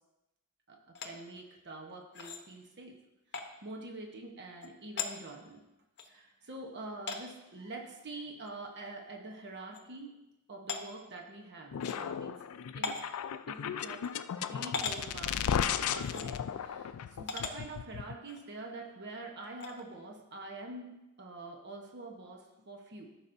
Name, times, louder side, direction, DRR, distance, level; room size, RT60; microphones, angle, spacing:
voice 1, 0.7-3.0 3.3-5.6 6.1-10.1 10.5-12.4 12.7-12.9 13.5-23.1, right 2 dB, 50° right, 1 dB, 1.0 m, -46 dB
sound 1, 0.9-1.1 2.1-2.4 3.3-3.5 4.6-4.7 5.0-5.1 6.0-6.1 7.1-7.2 8.4-8.5 8.9-9.0 9.7-9.8 10.7-10.8 11.8-12.0 12.8-13.1 14.0-14.1 14.7-15.0 15.9-16.3 17.3-17.5 18.3-18.4 19.6-19.8, left 5 dB, 50° left, 0.8 m, -37 dB
sound 2, 11.7-18.1, left 8 dB, 75° left, 0.4 m, -35 dB
14.0 x 6.1 x 2.7 m, 0.95 s
head